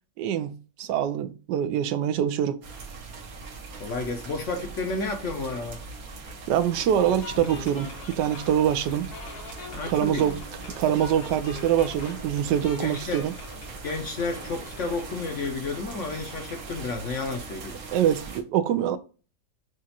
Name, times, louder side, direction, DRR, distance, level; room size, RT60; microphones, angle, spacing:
voice 1, 0.2-2.6 6.5-9.1 9.9-10.4 10.8-13.3 17.9-19.0, right 10 dB, 75° right, 1.2 m, -24 dB
sound 1, 2.6-18.4, right 3 dB, 60° right, 1.3 m, -41 dB
voice 2, 3.8-5.8 9.7-10.3 12.8-13.2 13.8-17.8, left 3 dB, 60° left, 0.8 m, -31 dB
sound 2, 7.0-15.6, left 4 dB, 85° left, 1.8 m, -43 dB
6.3 x 2.4 x 2.7 m
omnidirectional pair, 1.9 m